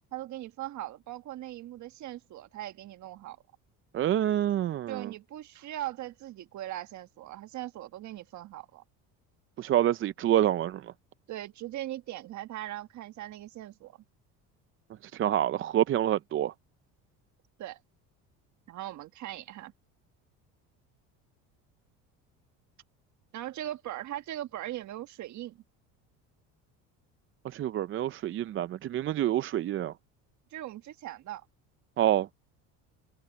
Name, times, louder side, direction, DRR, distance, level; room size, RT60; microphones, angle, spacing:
voice 1, 0.1-3.4 4.9-8.8 11.3-14.0 17.6-17.8 18.7-19.7 23.3-25.6 30.5-31.4, right 14 dB, 55° right, 1.5 m, -40 dB
voice 2, 3.9-5.1 9.6-10.9 15.0-16.5 27.4-29.9 32.0-32.3, right 12 dB, 35° right, 0.5 m, -27 dB
supercardioid pair, 105°, 35 cm